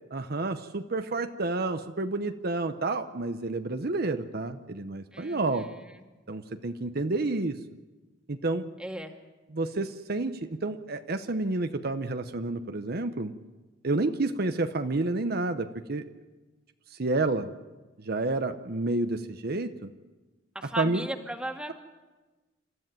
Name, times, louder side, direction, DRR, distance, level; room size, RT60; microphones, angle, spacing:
voice 1, 0.1-5.7 6.3-7.6 8.3-8.7 9.5-13.3 13.8-16.1 17.0-17.5 18.0-19.9 20.8-21.0, right 2 dB, 55° right, 8 dB, 0.9 m, -29 dB
voice 2, 5.1-5.9 8.8-9.1 20.6-21.7, right 1 dB, 5° right, 4 dB, 1.9 m, -37 dB
28.5 x 13.5 x 9.2 m, 1.2 s
head